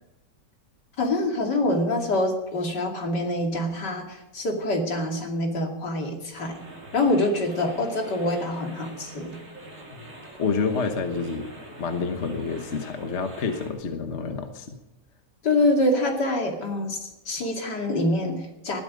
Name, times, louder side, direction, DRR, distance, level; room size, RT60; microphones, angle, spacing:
voice 1, 1.0-6.6 6.9-9.4 15.4-18.8, left 1 dB, 70° left, 2 dB, 3.1 m, -25 dB
sound 1, 6.4-13.7, right 1 dB, 45° right, 4.8 m, -44 dB
voice 2, 10.4-14.8, left 5 dB, 45° left, 6 dB, 1.4 m, -28 dB
20.0 x 13.0 x 5.2 m, 0.94 s
omnidirectional pair, 1.9 m